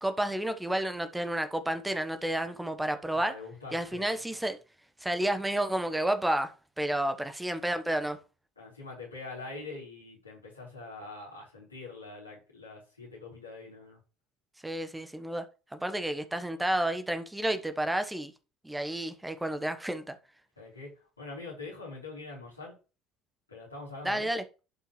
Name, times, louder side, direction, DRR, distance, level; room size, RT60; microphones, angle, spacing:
voice 1, 0.0-3.3 3.7-4.6 5.0-8.2 14.6-15.4 15.7-18.3 18.6-20.2 24.0-24.4, right 1 dB, 10° right, 1.2 m, -31 dB
voice 2, 3.1-4.1 8.6-14.0 20.6-22.7 23.5-24.3, left 3 dB, 85° left, 3.7 m, -44 dB
11.5 x 5.6 x 3.2 m
figure-of-eight pair, 60°, 0 cm